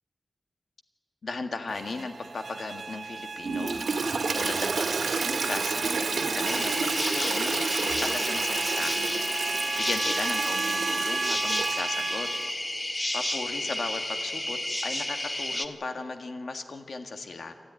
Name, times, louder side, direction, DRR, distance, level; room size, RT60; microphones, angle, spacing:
voice 1, 1.2-9.0 9.7-12.3 13.1-14.6 14.8-17.5, left 3 dB, 70° left, 6 dB, 1.7 m, -36 dB
sound 1, 1.7-12.5, right 4 dB, 65° right, 0.8 m, -35 dB
Toilet flush, 3.4-12.0, right 4 dB, 90° right, 1.8 m, -30 dB
sound 2, 6.4-15.7, left 1 dB, 25° left, 1.3 m, -31 dB
28.5 x 14.0 x 9.9 m, 2.2 s
wide cardioid pair, 90°, 0 cm